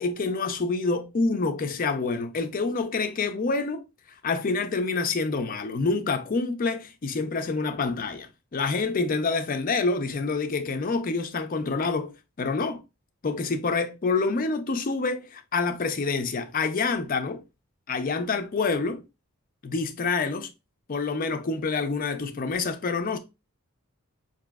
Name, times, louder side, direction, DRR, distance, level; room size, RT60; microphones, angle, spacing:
voice 1, 0.0-3.8 4.2-12.1 12.4-12.8 13.2-17.4 17.9-19.0 19.6-20.5 20.9-23.2, left 4 dB, 40° left, 0.4 m, -27 dB
5.0 x 2.6 x 2.3 m
head